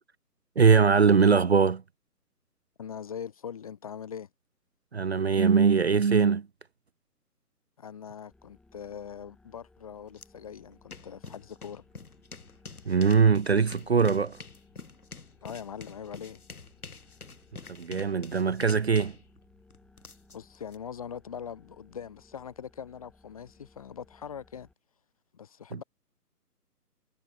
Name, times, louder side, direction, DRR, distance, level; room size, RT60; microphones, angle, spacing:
voice 1, 0.6-1.8 4.9-6.5 12.9-14.4 17.8-19.2, right 5 dB, 45° right, 0.7 m, -21 dB
voice 2, 2.8-4.3 7.8-11.8 15.4-16.4 20.3-24.7 25.3-25.8, left 8 dB, 20° left, 1.0 m, -42 dB
sound 1, 8.3-24.7, left 2 dB, ahead, 2.0 m, -61 dB
sound 2, 10.2-10.3 10.6-20.8, left 4 dB, 65° left, 4.6 m, -47 dB
figure-of-eight pair, 145°, 48 cm